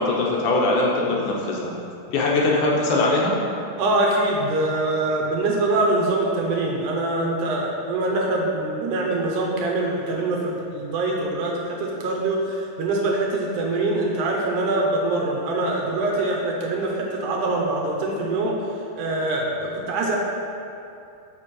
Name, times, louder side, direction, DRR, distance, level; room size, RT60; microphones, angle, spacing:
voice 1, 0.0-1.7 2.1-3.4, left 2 dB, 75° left, -2 dB, 2.1 m, -21 dB
voice 2, 3.8-18.5 19.0-20.2, right 2 dB, 75° right, -1 dB, 2.1 m, -24 dB
6.1 x 5.2 x 6.1 m, 2.6 s
omnidirectional pair, 3.9 m